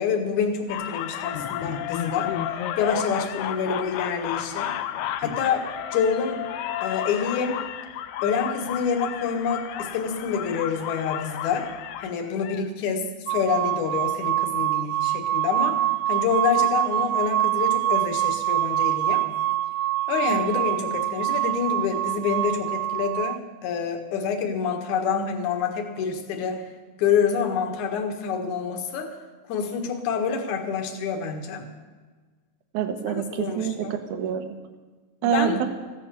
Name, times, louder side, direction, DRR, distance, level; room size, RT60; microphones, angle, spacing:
voice 1, 0.0-2.3 2.8-4.7 5.2-6.4 6.8-7.6 8.2-11.7 12.0-19.3 20.1-26.7 27.0-29.2 29.5-31.7 33.3-33.9 35.2-35.6, left 6 dB, 60° left, 4 dB, 2.8 m, -27 dB
sound 1, 0.7-12.7, left 10 dB, 75° left, 1.8 m, -32 dB
sound 2, 13.3-23.4, right 14 dB, 80° right, 2.3 m, -25 dB
voice 2, 32.7-34.5 35.2-35.6, right 8 dB, 65° right, 7 dB, 2.5 m, -26 dB
16.0 x 11.5 x 7.0 m, 1.4 s
omnidirectional pair, 4.2 m